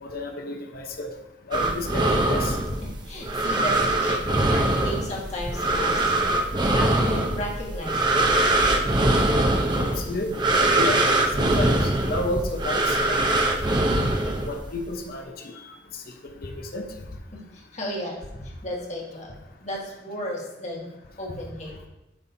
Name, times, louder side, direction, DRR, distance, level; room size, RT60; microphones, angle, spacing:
voice 1, 0.0-1.1 1.5-2.6 9.7-11.1 11.4-13.3 13.9-16.8, left 2 dB, 55° left, 4 dB, 0.9 m, -32 dB
sound 1, 1.5-14.8, right 2 dB, 25° right, 0.7 m, -23 dB
voice 2, 2.8-6.2 6.7-8.5 17.3-20.9 21.2-21.7, left 1 dB, 40° left, -2 dB, 1.7 m, -34 dB
12.5 x 5.6 x 2.7 m, 0.90 s
head